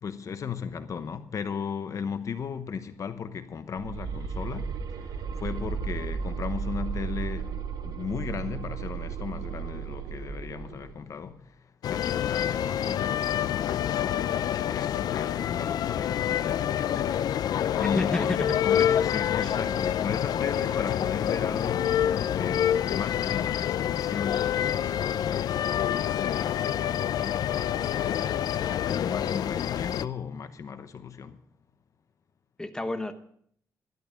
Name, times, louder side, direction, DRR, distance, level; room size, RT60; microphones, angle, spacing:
voice 1, 0.0-7.6 7.8-13.5 13.9-14.2 14.7-18.4 18.6-31.4, left 6 dB, 50° left, 0.9 m, -36 dB
sound 1, 3.7-11.0, right 6 dB, 75° right, 1.2 m, -34 dB
sound 2, 11.8-30.0, left 10 dB, 75° left, 0.5 m, -27 dB
voice 2, 17.8-18.9 19.4-19.6 32.6-33.1, left 1 dB, 10° left, 1.0 m, -32 dB
13.0 x 12.0 x 5.1 m
cardioid pair, 115°, 7 cm